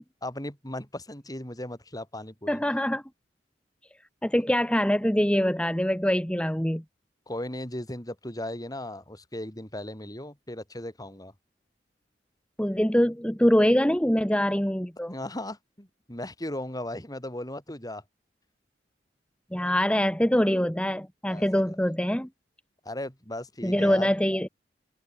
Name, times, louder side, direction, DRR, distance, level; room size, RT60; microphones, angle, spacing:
voice 1, 0.2-2.6 7.3-11.3 15.1-18.0 21.3-21.6 22.8-24.1, left 1 dB, 20° left, 7.2 m, -37 dB
voice 2, 2.5-3.0 4.2-6.8 12.6-15.1 19.5-22.3 23.6-24.5, equal, 5° left, 1.6 m, -24 dB
head